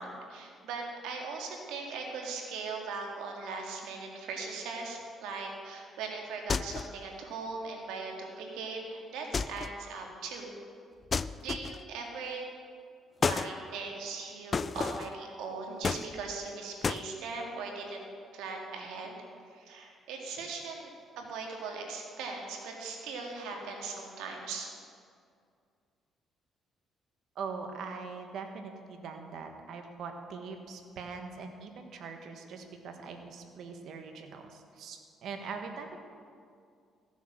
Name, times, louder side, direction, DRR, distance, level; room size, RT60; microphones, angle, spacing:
voice 1, 0.0-10.5 11.4-12.4 13.3-18.0 18.3-19.2 19.5-20.9 21.2-24.7, right 4 dB, 85° right, 1 dB, 1.9 m, -39 dB
sound 1, 6.5-7.0 9.3-9.8 11.1-11.9 13.2-13.5 14.5-15.1 15.8-16.5 16.8-17.1, left 5 dB, 40° left, 0.3 m, -32 dB
voice 2, 27.3-36.0, right 5 dB, 70° right, 5 dB, 1.4 m, -42 dB
15.0 x 7.1 x 6.0 m, 2.3 s
cardioid pair, 85°, 0 cm